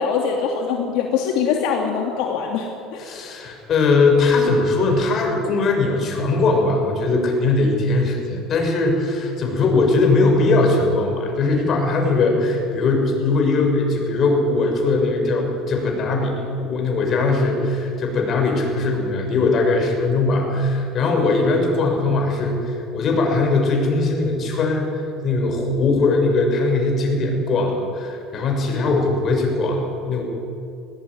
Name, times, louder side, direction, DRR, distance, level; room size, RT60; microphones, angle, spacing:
voice 1, 0.0-3.1, left 6 dB, 70° left, 0 dB, 2.8 m, -23 dB
voice 2, 3.0-24.9 25.2-30.2, left 3 dB, 40° left, 1 dB, 6.7 m, -20 dB
20.0 x 19.0 x 9.7 m, 2.6 s
cardioid pair, 130°, 0 cm